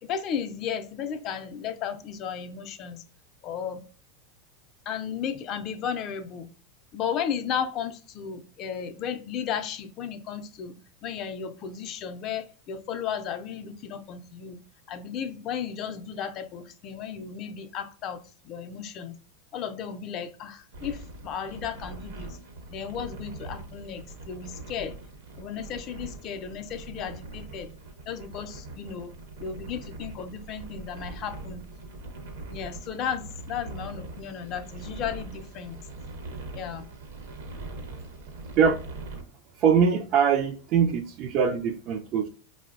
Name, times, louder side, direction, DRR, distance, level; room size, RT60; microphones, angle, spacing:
voice 1, 0.0-3.0 3.4-3.8 4.9-6.5 6.9-10.7 11.0-14.6 14.9-19.1 19.5-22.4 22.7-24.9 25.4-27.7 28.1-29.1 29.4-31.6 32.5-35.8 36.5-36.8, left 8 dB, 45° left, 8 dB, 0.4 m, -34 dB
sound 1, 20.7-39.2, right 2 dB, 75° right, 0.7 m, -42 dB
voice 2, 39.6-42.3, right 6 dB, 50° right, 4 dB, 0.3 m, -22 dB
4.3 x 2.0 x 2.4 m, 0.38 s
hypercardioid pair, 95°, 0 cm